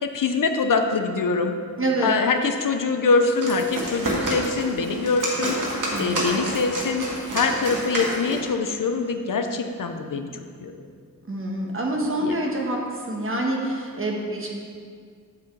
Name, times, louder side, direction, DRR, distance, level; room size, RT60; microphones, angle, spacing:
voice 1, 0.0-1.6 2.0-10.3 10.6-10.9 12.2-12.3, left 4 dB, 65° left, 6 dB, 0.7 m, -24 dB
voice 2, 1.8-2.2 5.9-6.4 11.3-14.6, right 1 dB, 40° right, -1 dB, 1.4 m, -27 dB
sound 1, 3.2-8.5, right 1 dB, 65° right, 1.9 m, -29 dB
7.4 x 7.2 x 4.6 m, 2.1 s
wide cardioid pair, 90°, 34 cm